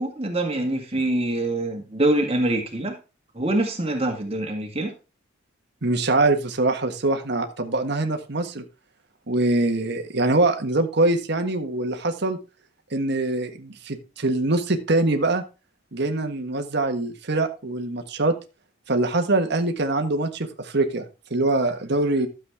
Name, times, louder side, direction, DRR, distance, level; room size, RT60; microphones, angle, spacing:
voice 1, 0.0-2.9 3.3-4.9, right 1 dB, 30° right, 2 dB, 1.8 m, -24 dB
voice 2, 5.8-8.6 9.3-12.4 12.9-15.4 15.9-18.3 18.9-21.0 21.3-22.3, right 2 dB, 60° right, 6 dB, 1.5 m, -23 dB
13.0 x 7.5 x 3.6 m, 0.30 s
head